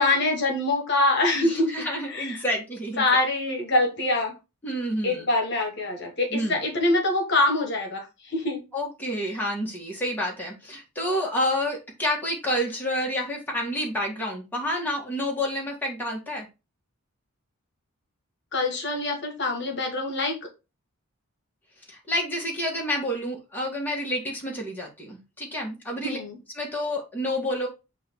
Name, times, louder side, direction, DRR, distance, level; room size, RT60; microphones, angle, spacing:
voice 1, 0.0-2.4 3.0-4.4 5.0-8.6 18.5-20.3 26.0-26.4, left 2 dB, 50° left, 2 dB, 1.4 m, -24 dB
voice 2, 1.4-3.1 4.6-5.3 6.3-6.6 8.7-16.5 21.9-26.2 26.6-27.7, equal, 10° left, -3 dB, 1.7 m, -29 dB
7.8 x 2.8 x 4.6 m, 0.27 s
head